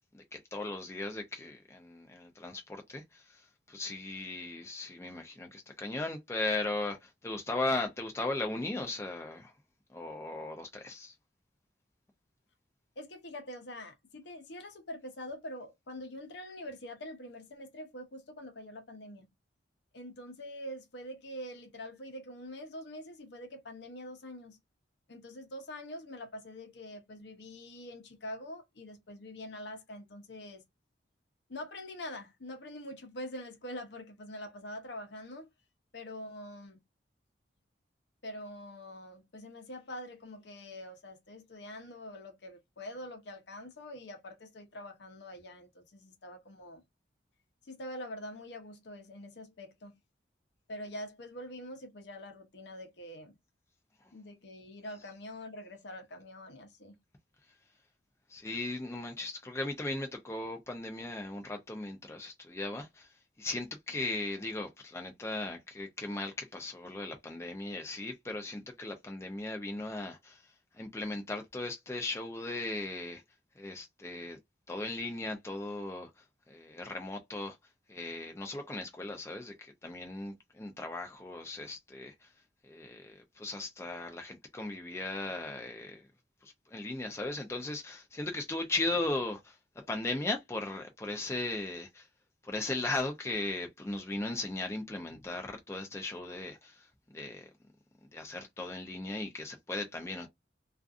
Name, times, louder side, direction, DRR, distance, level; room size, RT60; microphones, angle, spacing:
voice 1, 0.1-3.4 3.7-9.5 9.9-11.1 58.3-63.1 63.4-70.4 70.8-73.2 73.6-74.4 74.7-76.1 76.5-77.6 77.9-82.3 82.6-86.0 86.4-89.6 89.9-92.1 92.4-97.5 98.1-100.3, left 2 dB, 15° left, 0.4 m, -37 dB
voice 2, 13.0-19.3 19.9-24.6 25.1-30.6 31.5-35.5 35.9-36.8 38.2-46.8 47.6-49.9 50.7-53.3 54.1-57.0, left 1 dB, 70° left, 0.7 m, -45 dB
2.4 x 2.4 x 2.4 m
head